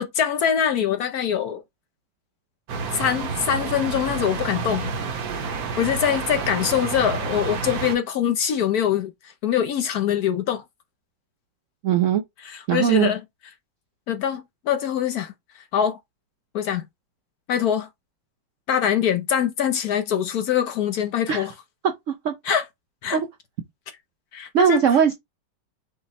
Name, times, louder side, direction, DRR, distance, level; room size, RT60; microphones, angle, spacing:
voice 1, 0.0-1.6 2.9-4.9 5.8-10.6 12.4-13.2 14.1-16.0 16.5-16.8 17.5-17.9 18.7-21.5 22.4-22.6 23.0-23.2 24.3-24.8, left 9 dB, 65° left, 1.0 m, -23 dB
sound 1, 2.7-8.0, right 5 dB, 60° right, 1.3 m, -29 dB
voice 2, 11.8-12.2 12.7-13.1 21.3-21.5 22.1-22.6 23.1-23.3 24.5-25.1, right 8 dB, 80° right, 0.6 m, -20 dB
5.9 x 2.1 x 4.1 m
omnidirectional pair, 2.0 m